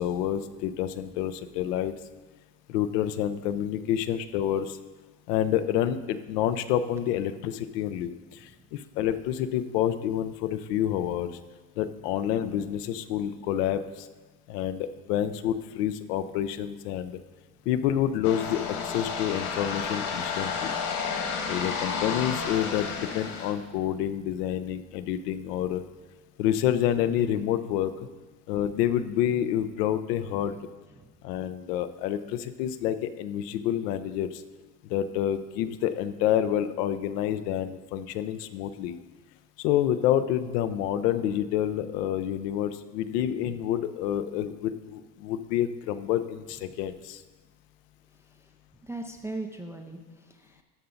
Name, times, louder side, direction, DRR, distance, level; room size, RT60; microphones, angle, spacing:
voice 1, 0.0-1.9 2.7-4.8 5.3-11.4 11.8-14.1 14.5-17.2 17.7-20.8 21.5-25.8 26.4-28.1 28.5-30.6 31.2-34.4 34.8-39.0 39.6-47.2, left 11 dB, 75° left, 11 dB, 0.8 m, -28 dB
sound 1, 18.2-23.5, left 5 dB, 55° left, 1.9 m, -31 dB
voice 2, 48.8-50.6, right 2 dB, 5° right, 3 dB, 0.3 m, -38 dB
13.0 x 5.7 x 3.9 m, 1.3 s
supercardioid pair, 100°, 49 cm